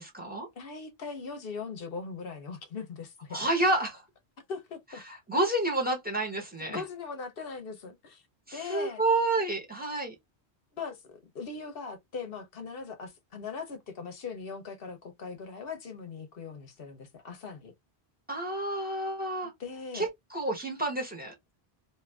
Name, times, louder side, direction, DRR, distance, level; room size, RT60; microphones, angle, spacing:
voice 1, 0.0-0.5 3.3-4.0 5.0-6.8 8.5-10.1 18.3-19.5 19.9-21.3, right 2 dB, 10° right, 1.0 m, -29 dB
voice 2, 0.6-3.4 4.5-5.0 6.7-8.2 8.5-9.0 10.7-17.7 19.6-20.0, left 5 dB, 60° left, 0.9 m, -40 dB
2.6 x 2.5 x 3.3 m
omnidirectional pair, 1.1 m